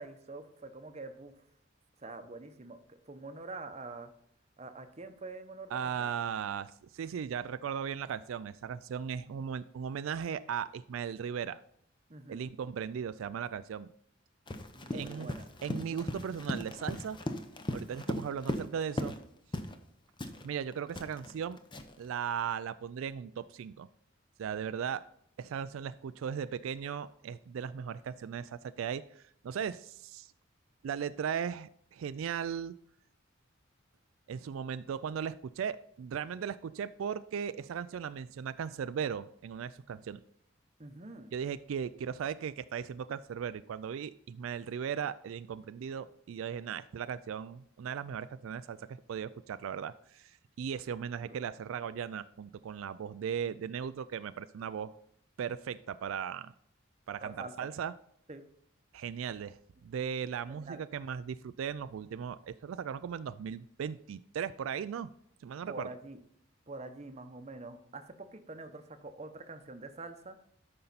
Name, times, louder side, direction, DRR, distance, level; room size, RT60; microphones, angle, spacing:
voice 1, 0.0-1.3 2.0-4.1 4.6-6.1 12.1-12.4 14.7-15.5 40.8-41.3 51.2-51.4 57.2-57.7 58.3-58.4 60.6-60.8 65.7-66.2 66.7-70.4, right 3 dB, 35° right, 8 dB, 0.8 m, -45 dB
voice 2, 5.7-11.6 12.3-13.9 14.9-15.3 15.6-17.2 17.7-19.2 20.4-21.6 22.0-23.9 24.4-25.0 25.4-30.3 30.8-32.7 34.3-40.2 41.3-54.9 55.4-56.5 57.1-57.9 58.9-65.1 65.4-65.9, right 7 dB, 90° right, 14 dB, 0.3 m, -37 dB
Run, 14.5-19.2 19.5-19.8 20.2-22.1, left 1 dB, 25° left, 0.7 m, -38 dB
12.5 x 5.5 x 4.0 m, 0.68 s
head